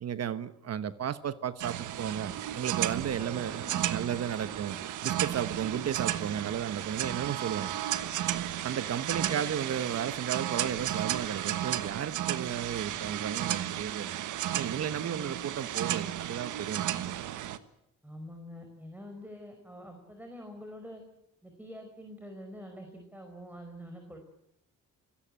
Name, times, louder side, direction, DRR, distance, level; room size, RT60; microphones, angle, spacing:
voice 1, 0.0-3.6 3.9-7.7 8.6-17.3, right 9 dB, 55° right, 13 dB, 1.2 m, -34 dB
sound 1, 1.6-17.6, right 12 dB, 80° right, 1.4 m, -34 dB
voice 2, 3.2-3.9 9.1-9.5 15.0-15.4 18.0-21.0 21.4-24.2, equal, 5° right, 4 dB, 4.9 m, -46 dB
26.0 x 17.5 x 8.9 m, 0.79 s
cardioid pair, 90°, 30 cm